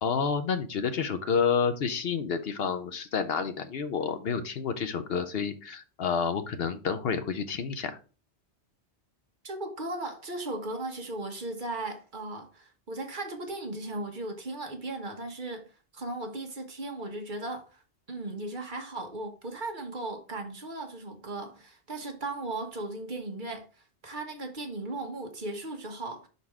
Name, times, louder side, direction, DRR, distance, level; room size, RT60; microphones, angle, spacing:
voice 1, 0.0-8.0, left 6 dB, 65° left, 0.8 m, -29 dB
voice 2, 9.4-15.6 15.9-17.8 18.1-23.7 24.0-26.3, right 2 dB, 45° right, 1.2 m, -37 dB
5.8 x 4.0 x 4.8 m
omnidirectional pair, 1.2 m